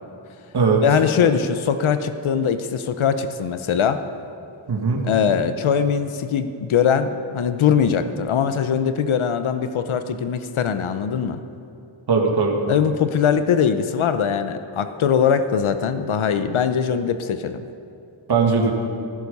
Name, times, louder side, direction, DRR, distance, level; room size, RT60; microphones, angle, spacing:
voice 1, 0.8-4.0 5.0-11.4 12.7-17.6, left 7 dB, 90° left, 10 dB, 0.8 m, -21 dB
voice 2, 4.7-5.1 12.1-12.5 18.3-18.7, right 4 dB, 55° right, 0 dB, 2.0 m, -19 dB
15.5 x 13.0 x 5.5 m, 2.7 s
wide cardioid pair, 140°, 47 cm